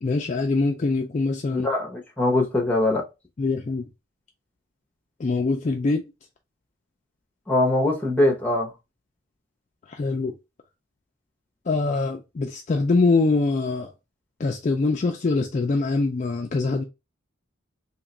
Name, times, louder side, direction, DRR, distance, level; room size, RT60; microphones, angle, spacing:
voice 1, 0.0-1.7 3.4-3.9 5.2-6.0 9.9-10.4 11.7-13.9 14.4-16.8, left 3 dB, 35° left, 0.3 m, -23 dB
voice 2, 1.5-3.1 7.5-8.7, left 2 dB, 10° left, 0.8 m, -22 dB
2.9 x 2.4 x 4.0 m
head